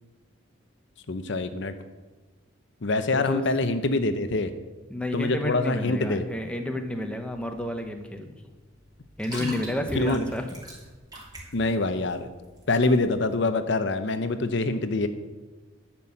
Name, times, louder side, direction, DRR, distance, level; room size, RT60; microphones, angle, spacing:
voice 1, 1.1-1.7 2.8-4.5 5.1-6.2 9.3-9.5 9.9-10.2 11.5-12.3 12.7-15.1, left 2 dB, 60° left, 10 dB, 0.7 m, -25 dB
voice 2, 3.1-3.4 4.9-8.4 9.2-10.5, left 1 dB, 5° left, 5 dB, 0.9 m, -31 dB
sound 1, 6.7-13.4, right 1 dB, 20° right, 2.9 m, -43 dB
11.0 x 6.1 x 8.6 m, 1.2 s
head